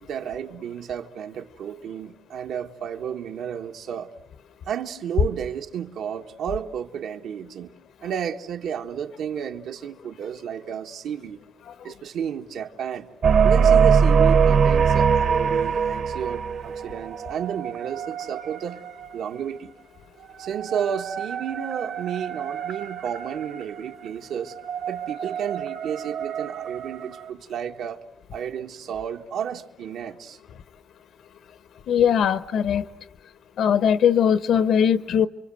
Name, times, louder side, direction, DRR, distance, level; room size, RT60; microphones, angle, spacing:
voice 1, 0.0-4.1 4.7-7.7 8.0-11.4 11.8-13.1 13.4-18.8 19.1-19.7 20.4-24.5 24.9-28.0 28.3-30.4, right 8 dB, 85° right, 1.5 m, -32 dB
sound 1, 13.2-19.4 20.2-27.3, right 6 dB, 55° right, 1.0 m, -23 dB
voice 2, 31.9-32.9 33.6-35.3, left 8 dB, 70° left, 1.0 m, -20 dB
29.5 x 24.5 x 7.8 m
wide cardioid pair, 170°, 0 cm